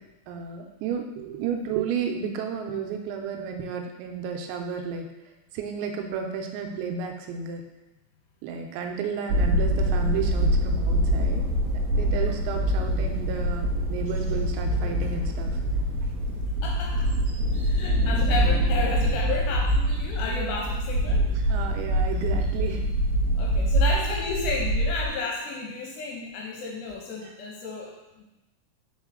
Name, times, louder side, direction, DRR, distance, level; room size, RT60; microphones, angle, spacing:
voice 1, 0.3-5.1 5.5-7.6 8.4-11.5 11.9-15.6 21.3-22.9 27.2-27.3, right 6 dB, 85° right, 3 dB, 3.0 m, -32 dB
sound 1, 9.3-25.1, equal, 70° right, 2.0 m, -24 dB
voice 2, 16.6-17.1 17.5-21.3 23.4-28.2, left 4 dB, 85° left, -1 dB, 2.7 m, -32 dB
5.6 x 4.6 x 3.7 m, 1.0 s
omnidirectional pair, 5.2 m